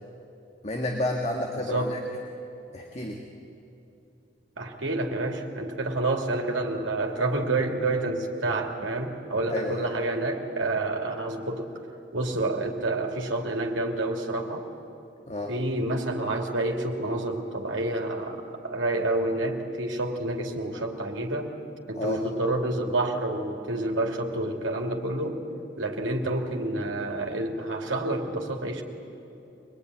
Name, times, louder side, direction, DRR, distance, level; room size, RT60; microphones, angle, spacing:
voice 1, 0.6-2.0 2.7-3.2 9.5-9.9 15.3-15.5 21.9-22.2, left 1 dB, 35° left, 1 dB, 1.7 m, -30 dB
voice 2, 1.6-2.0 4.6-11.7 12.1-14.7 15.5-21.5 21.9-25.4 25.8-28.8, right 2 dB, 85° right, 2 dB, 2.7 m, -28 dB
24.0 x 20.5 x 9.8 m, 2.8 s
head